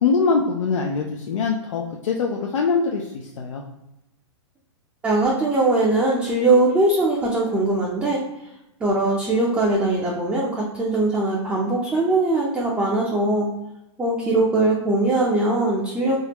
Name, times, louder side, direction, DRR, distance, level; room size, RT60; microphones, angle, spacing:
voice 1, 0.0-3.6, left 4 dB, 90° left, 0 dB, 0.4 m, -23 dB
voice 2, 5.0-8.2 8.8-13.5 14.0-16.2, right 2 dB, 10° right, -5 dB, 0.4 m, -21 dB
3.5 x 2.0 x 2.8 m, 0.89 s
hypercardioid pair, 135°, 16 cm